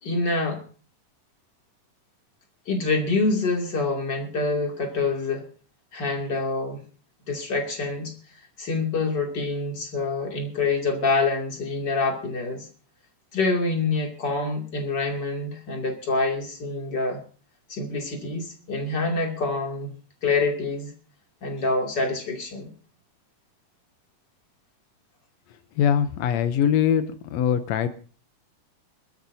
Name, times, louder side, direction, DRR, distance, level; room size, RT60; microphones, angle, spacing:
voice 1, 0.0-0.6 2.7-5.4 5.9-6.8 7.3-8.1 8.6-12.7 13.3-17.2 17.7-19.9 20.2-20.9 21.4-22.7, left 3 dB, 30° left, 1 dB, 2.9 m, -26 dB
voice 2, 25.8-27.0 27.3-27.9, left 8 dB, 85° left, 10 dB, 1.5 m, -22 dB
25.0 x 13.5 x 2.8 m, 0.40 s
omnidirectional pair, 4.1 m